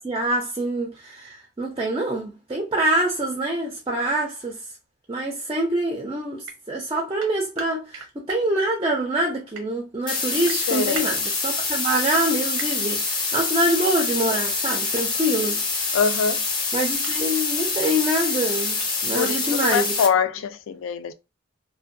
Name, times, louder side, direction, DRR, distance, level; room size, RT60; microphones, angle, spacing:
voice 1, 0.0-4.6 5.1-15.6 16.7-18.8 19.0-19.9, right 1 dB, 20° right, 0.4 m, -25 dB
sound 1, 6.4-6.6 7.2-8.4 9.3-9.7 10.4-11.3 12.6-12.7 14.4-14.6 14.9-15.3 16.2-16.3 16.7-17.1 17.8-18.2 18.8-18.9 19.2-19.3 19.7-19.8, right 3 dB, 80° right, 0.7 m, -37 dB
sound 2, 10.1-20.1, left 4 dB, 20° left, 0.6 m, -26 dB
voice 2, 10.7-11.1 15.9-16.5 19.1-21.1, left 6 dB, 75° left, 0.3 m, -24 dB
2.5 x 2.2 x 2.6 m
head